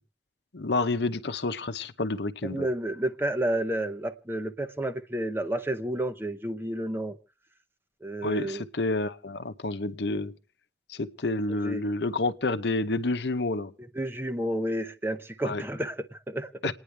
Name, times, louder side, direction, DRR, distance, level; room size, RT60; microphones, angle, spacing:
voice 1, 0.5-2.7 8.2-10.3 10.9-13.7 15.4-15.6 16.6-16.7, left 2 dB, 75° left, 0.9 m, -29 dB
voice 2, 2.4-7.2 8.0-8.6 11.5-11.9 13.9-16.5, right 1 dB, 15° right, 0.8 m, -31 dB
28.5 x 9.7 x 3.4 m
head